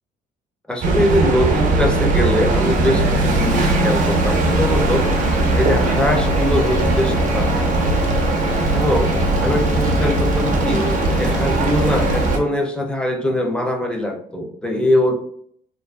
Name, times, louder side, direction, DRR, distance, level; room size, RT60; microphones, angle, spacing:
voice 1, 0.7-5.1 5.6-8.0 8.7-9.1 9.4-10.8 11.2-15.2, left 1 dB, 5° left, 1 dB, 0.5 m, -22 dB
sound 1, 0.8-12.4, right 2 dB, 50° right, 0.6 m, -19 dB
sound 2, 3.4-12.4, left 3 dB, 80° left, 0.5 m, -30 dB
2.4 x 2.3 x 2.2 m, 0.63 s
cardioid pair, 110°, 17 cm